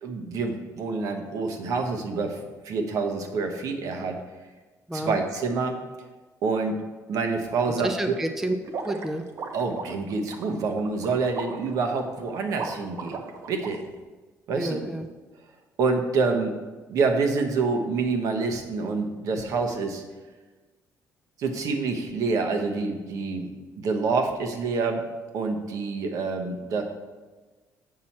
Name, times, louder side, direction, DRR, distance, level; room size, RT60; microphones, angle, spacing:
voice 1, 0.0-4.2 4.9-5.8 6.4-6.8 7.1-8.1 9.5-13.2 13.5-13.8 14.5-14.9 15.8-16.5 16.9-20.0 21.4-25.0 25.3-26.8, right 4 dB, 65° right, 4 dB, 1.1 m, -27 dB
voice 2, 7.8-8.6 8.8-9.2 14.6-15.1, right 1 dB, 5° right, 5 dB, 0.4 m, -29 dB
sound 1, 8.6-13.7, right 5 dB, 50° right, 0.7 m, -37 dB
7.6 x 5.8 x 4.3 m, 1.3 s
cardioid pair, 140°, 6 cm